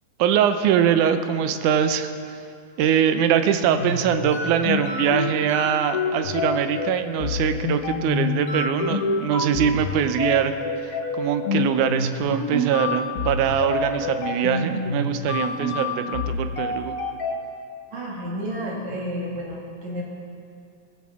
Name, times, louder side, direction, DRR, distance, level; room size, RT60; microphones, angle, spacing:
voice 1, 0.2-2.1 2.8-10.5 10.8-17.0, right 8 dB, 85° right, 9 dB, 2.2 m, -22 dB
sound 1, 3.6-17.4, left 3 dB, 80° left, 0.7 m, -27 dB
voice 2, 17.9-20.0, equal, 65° right, -3 dB, 3.3 m, -31 dB
18.5 x 14.5 x 3.6 m, 2.4 s
omnidirectional pair, 3.5 m